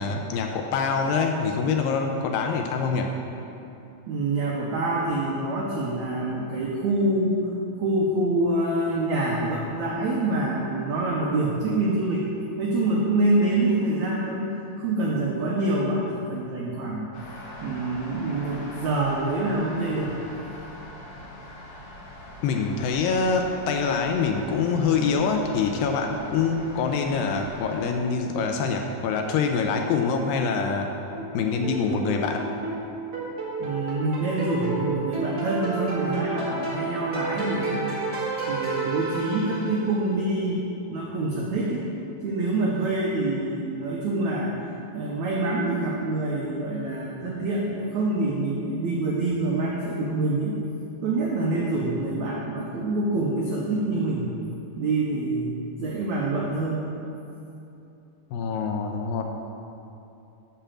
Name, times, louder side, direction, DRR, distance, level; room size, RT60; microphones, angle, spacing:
voice 1, 0.0-3.1 22.4-30.9 31.3-32.5 58.3-59.2, left 5 dB, 80° left, 3 dB, 2.2 m, -25 dB
voice 2, 4.1-7.5 7.8-12.2 12.6-17.1 17.6-20.1 33.6-38.0 38.5-41.8 42.2-44.5 44.9-50.6 51.0-54.3 54.8-56.9, right 2 dB, 85° right, -3 dB, 1.6 m, -26 dB
sound 1, 17.1-27.9, left 1 dB, 65° left, 2.6 m, -42 dB
sound 2, 31.1-40.0, right 3 dB, 50° right, 1.1 m, -31 dB
7.0 x 5.7 x 7.3 m, 2.8 s
omnidirectional pair, 4.3 m